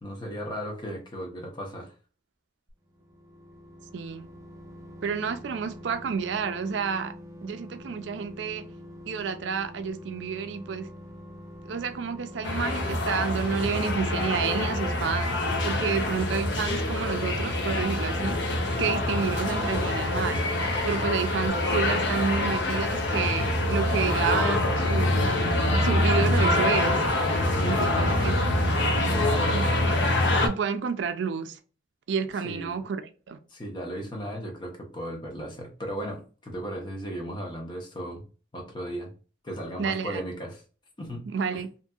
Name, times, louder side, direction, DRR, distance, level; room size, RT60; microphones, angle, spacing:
voice 1, 0.0-1.9 15.8-16.3 27.5-28.2 29.0-29.6 32.4-32.8 33.5-38.2 38.5-39.1 39.4-40.6 41.0-41.6, equal, 25° left, 0.7 m, -36 dB
sound 1, 2.7-21.2 21.5-21.6, equal, 20° right, 0.5 m, -45 dB
voice 2, 3.9-4.3 5.0-7.1 7.4-8.7 9.1-10.9 11.6-15.4 15.6-18.4 18.8-20.4 20.8-25.4 25.8-27.1 27.6-28.3 29.5-29.7 30.4-31.6 32.1-33.0 33.3-33.4 39.8-40.2 41.3-41.7, right 6 dB, 85° right, 0.4 m, -30 dB
sound 2, 12.4-30.5, left 1 dB, 90° left, 0.5 m, -25 dB
sound 3, 19.7-27.8, left 3 dB, 65° left, 1.0 m, -44 dB
2.7 x 2.6 x 2.3 m
head